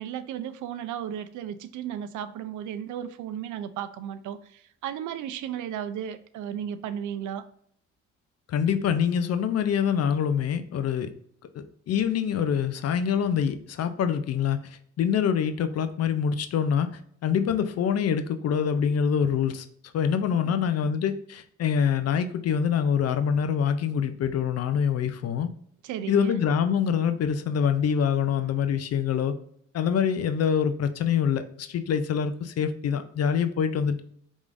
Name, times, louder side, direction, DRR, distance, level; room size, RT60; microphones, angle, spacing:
voice 1, 0.0-7.4 20.3-20.9 25.8-26.4, right 9 dB, 75° right, 12 dB, 0.5 m, -35 dB
voice 2, 8.5-11.1 11.5-16.9 17.2-19.7 19.9-25.5 26.1-29.3 29.7-34.0, left 7 dB, 55° left, 10 dB, 0.5 m, -25 dB
4.7 x 3.6 x 2.5 m, 0.65 s
cardioid pair, 90°, 30 cm